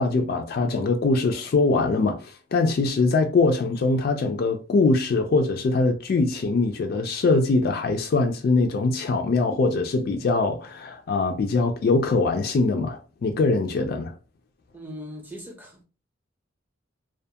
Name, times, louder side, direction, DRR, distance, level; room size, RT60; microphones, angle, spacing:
voice 1, 0.0-14.1, left 3 dB, 50° left, 0.3 m, -22 dB
voice 2, 14.7-15.8, equal, 10° right, 0.5 m, -39 dB
2.4 x 2.2 x 2.7 m
head